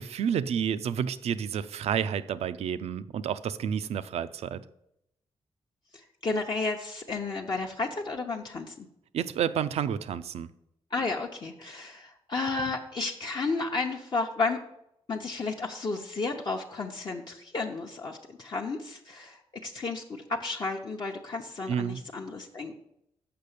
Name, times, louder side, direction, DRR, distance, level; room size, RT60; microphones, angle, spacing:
voice 1, 0.0-4.6 9.1-10.5 21.7-22.0, right 8 dB, 80° right, 14 dB, 0.4 m, -30 dB
voice 2, 5.9-8.9 10.9-14.6 15.1-22.8, left 3 dB, 45° left, 0 dB, 0.8 m, -32 dB
6.8 x 5.6 x 6.7 m, 0.79 s
cardioid pair, 80°, 11 cm